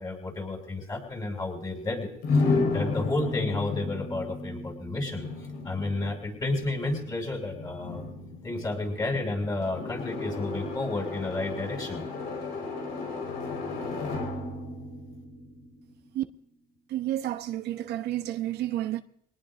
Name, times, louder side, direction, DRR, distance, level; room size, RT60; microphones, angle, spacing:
voice 1, 0.0-5.3 5.6-8.1 8.4-12.0, left 2 dB, 25° left, 7.2 m, -31 dB
sound 1, 2.2-16.1, left 3 dB, 75° left, 4.6 m, -33 dB
voice 2, 16.9-19.0, right 13 dB, 75° right, 0.9 m, -30 dB
23.5 x 19.0 x 2.6 m
cardioid pair, 110°, 17 cm